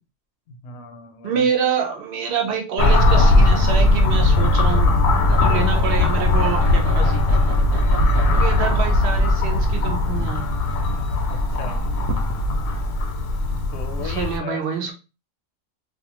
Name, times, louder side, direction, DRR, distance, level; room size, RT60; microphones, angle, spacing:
voice 1, 0.6-1.5 11.3-11.8 13.7-14.6, left 4 dB, 65° left, 6 dB, 0.8 m, -36 dB
voice 2, 1.2-4.9 5.2-7.2 8.3-10.5 14.0-14.9, right 6 dB, 55° right, 2 dB, 0.8 m, -26 dB
the dishes, 2.8-14.4, left 2 dB, 90° left, 1.0 m, -18 dB
sound 1, 5.2-13.7, right 3 dB, 85° right, 1.0 m, -34 dB
2.5 x 2.4 x 2.8 m, 0.30 s
omnidirectional pair, 1.3 m